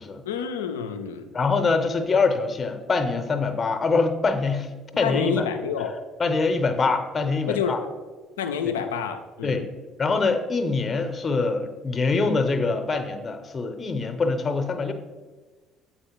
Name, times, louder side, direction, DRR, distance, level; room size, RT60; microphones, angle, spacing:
voice 1, 0.3-1.3 5.0-6.0 7.5-7.9 8.4-9.6, left 7 dB, 85° left, 7 dB, 0.3 m, -28 dB
voice 2, 1.3-4.7 5.0-5.5 6.2-7.8 9.4-9.6 10.0-14.9, left 4 dB, 35° left, 7 dB, 0.7 m, -24 dB
7.7 x 4.3 x 3.0 m, 1.3 s
hypercardioid pair, 55°, 0 cm